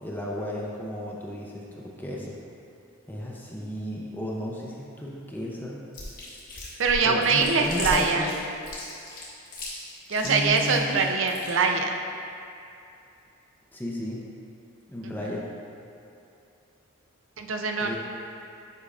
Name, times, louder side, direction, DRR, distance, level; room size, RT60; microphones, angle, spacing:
voice 1, 0.0-2.4 3.1-5.8 7.0-8.3 10.2-11.0 13.7-14.3 14.9-15.5 17.8-18.0, equal, 10° left, -3 dB, 0.5 m, -33 dB
Chewing mastication, 5.9-11.5, left 2 dB, 40° left, 1.4 m, -37 dB
voice 2, 6.8-8.3 10.1-12.0 15.0-15.1 17.4-18.0, right 4 dB, 60° right, 4 dB, 0.5 m, -23 dB
8.1 x 5.5 x 2.4 m, 2.6 s
head